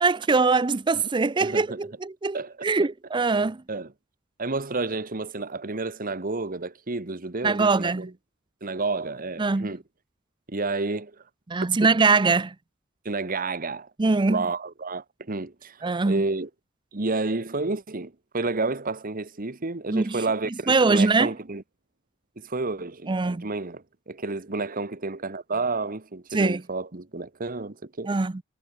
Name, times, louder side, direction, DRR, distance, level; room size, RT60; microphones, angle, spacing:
voice 1, 0.0-3.6 7.4-8.1 9.4-9.7 11.5-12.5 14.0-14.4 15.8-16.2 19.9-20.2 20.7-21.3 23.1-23.5 26.3-26.6 28.1-28.4, right 3 dB, 20° right, 0.5 m, -22 dB
voice 2, 1.4-1.8 2.3-2.7 3.3-3.9 4.4-8.1 8.6-9.8 10.5-11.1 11.8-11.9 13.0-13.9 14.3-16.5 16.9-21.6 22.4-28.1, right 3 dB, 40° right, 1.3 m, -30 dB
head